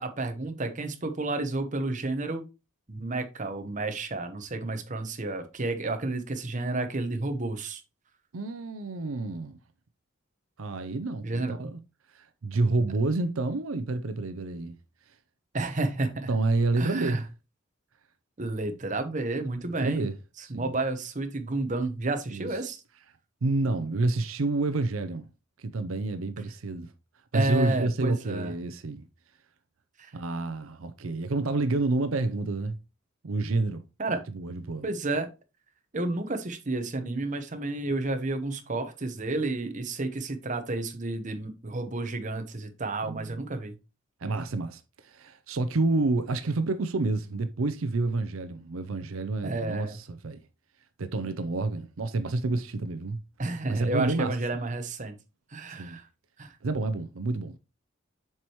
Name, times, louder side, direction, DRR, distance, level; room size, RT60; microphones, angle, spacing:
voice 1, 0.0-2.5 2.9-7.8 11.2-11.7 15.5-16.3 16.8-17.2 18.4-20.1 20.5-22.8 27.3-28.5 30.0-30.1 34.0-34.2 34.8-35.3 35.9-43.7 49.4-50.0 53.4-55.2 55.5-56.0 56.4-56.6, right 2 dB, 40° right, 0.9 m, -31 dB
voice 2, 8.3-9.6 10.6-11.8 12.1-14.7 16.3-17.2 19.8-20.1 20.5-20.7 22.3-22.5 23.4-25.3 25.6-26.9 27.3-29.0 30.1-32.8 33.2-34.8 43.1-43.4 44.2-50.4 51.0-53.2 53.7-54.4 55.8-56.0 56.6-57.5, right 3 dB, 80° right, 0.6 m, -29 dB
7.3 x 4.7 x 3.0 m
head